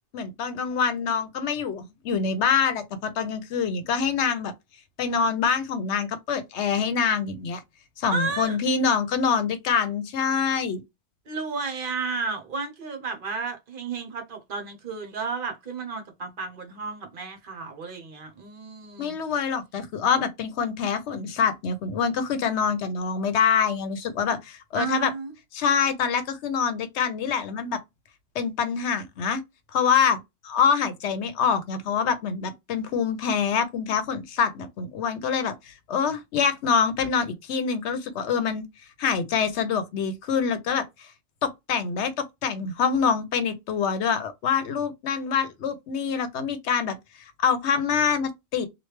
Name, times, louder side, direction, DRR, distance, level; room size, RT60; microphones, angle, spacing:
voice 1, 0.1-4.5 5.0-7.6 8.0-10.8 19.0-25.1 25.5-27.8 28.3-29.4 29.7-30.2 30.4-38.6 39.0-41.1 41.4-48.7, left 6 dB, 80° left, 0.9 m, -25 dB
voice 2, 8.1-8.6 11.3-19.2 24.8-25.3, right 4 dB, 55° right, 0.8 m, -32 dB
3.1 x 2.4 x 3.1 m
omnidirectional pair, 1.2 m